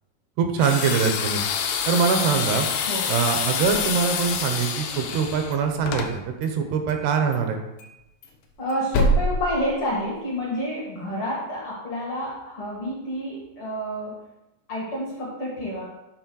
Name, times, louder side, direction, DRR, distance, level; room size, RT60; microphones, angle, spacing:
voice 1, 0.4-1.4 1.9-2.7 3.1-7.6, right 6 dB, 80° right, 5 dB, 2.7 m, -23 dB
sound 1, 0.6-6.1, left 7 dB, 90° left, 2.8 m, -27 dB
sound 2, 3.5-4.7 5.0-6.1 6.4-6.5 6.9-7.0 7.3-7.4 7.8-10.4, equal, 70° left, 2.1 m, -28 dB
voice 2, 8.6-14.2 14.7-15.9, equal, 50° left, -4 dB, 1.7 m, -29 dB
8.1 x 4.0 x 6.2 m, 0.95 s
omnidirectional pair, 4.8 m